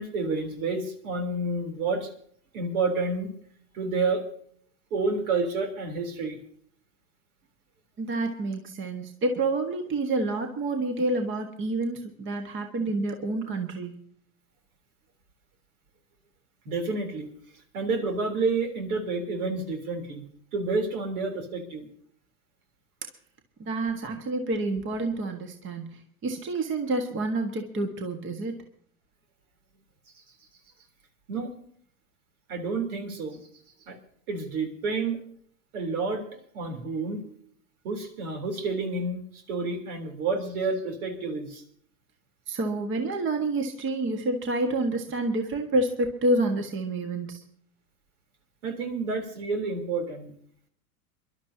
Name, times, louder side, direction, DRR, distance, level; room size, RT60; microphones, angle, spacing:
voice 1, 0.0-2.1 2.5-3.3 3.7-4.2 4.9-6.4 16.7-17.3 17.7-20.3 20.5-21.9 31.3-31.5 32.5-33.4 33.9-34.0 34.3-35.3 35.7-36.2 36.5-37.4 37.8-41.6 48.6-50.3, right 3 dB, 70° right, 5 dB, 3.7 m, -29 dB
voice 2, 8.0-13.9 23.6-28.5 42.5-47.4, right 2 dB, 25° right, 5 dB, 1.6 m, -28 dB
27.5 x 12.0 x 2.8 m, 0.62 s
hypercardioid pair, 120°, 45 cm